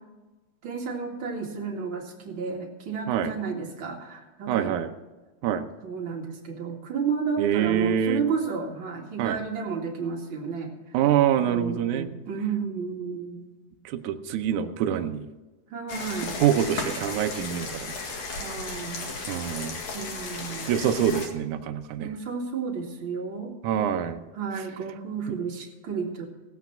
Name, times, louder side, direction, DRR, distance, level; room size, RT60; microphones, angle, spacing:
voice 1, 0.6-4.9 5.8-10.7 11.4-13.4 15.7-16.4 18.4-19.2 19.9-20.7 22.0-23.5 24.3-26.3, right 6 dB, 40° right, 0 dB, 2.4 m, -32 dB
voice 2, 4.5-4.9 5.4-5.7 7.4-8.2 9.2-9.4 10.9-12.1 13.9-15.3 16.4-17.9 19.3-19.8 20.7-22.1 23.6-24.2, right 9 dB, 75° right, 6 dB, 1.9 m, -25 dB
sound 1, 15.9-21.3, left 3 dB, 60° left, 3.2 m, -35 dB
17.5 x 8.2 x 5.8 m, 1.2 s
omnidirectional pair, 4.2 m